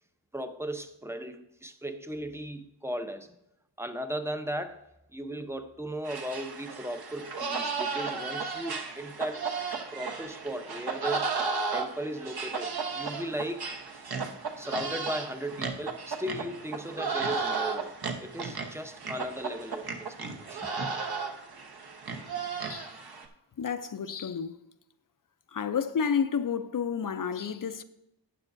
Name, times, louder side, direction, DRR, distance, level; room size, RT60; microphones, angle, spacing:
voice 1, 0.3-3.4 3.8-4.8 5.1-9.5 9.9-11.4 11.7-14.1 14.6-20.7, right 1 dB, 5° right, 0.7 m, -37 dB
sound 1, 6.0-23.2, right 4 dB, 60° right, 1.0 m, -34 dB
voice 2, 23.6-24.6 25.5-27.8, left 6 dB, 50° left, 0.6 m, -30 dB
12.0 x 8.9 x 2.6 m
wide cardioid pair, 85°, 43 cm